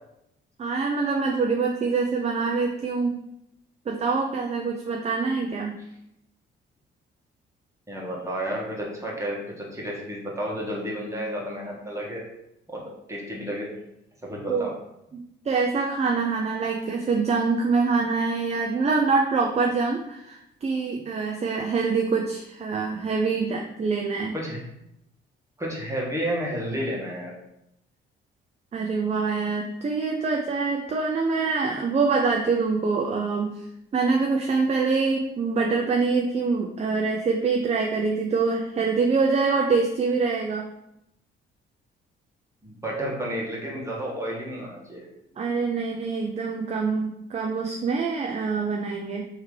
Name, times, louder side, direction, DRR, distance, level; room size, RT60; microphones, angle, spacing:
voice 1, 0.6-3.2 3.9-5.7 14.5-14.7 15.4-24.3 28.7-33.5 33.9-40.6 45.4-49.2, right 4 dB, 35° right, 1 dB, 0.5 m, -25 dB
voice 2, 7.9-12.2 12.7-12.8 13.1-13.7 14.2-14.7 24.3-24.6 25.6-27.4 42.6-45.1, equal, 15° right, -3 dB, 1.6 m, -31 dB
3.5 x 3.2 x 4.8 m, 0.82 s
cardioid pair, 90°, 20 cm